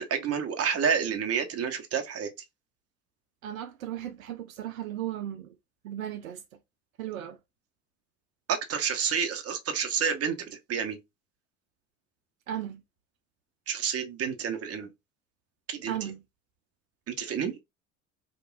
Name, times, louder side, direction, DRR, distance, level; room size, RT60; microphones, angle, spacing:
voice 1, 0.0-2.3 8.5-11.0 13.7-14.9 15.7-16.0 17.1-17.6, right 7 dB, 35° right, 1.0 m, -29 dB
voice 2, 3.4-5.5 5.8-6.4 7.0-7.4 12.5-12.8 15.9-16.2, right 11 dB, 75° right, 0.6 m, -36 dB
5.0 x 2.4 x 2.4 m
hypercardioid pair, 70°, 41 cm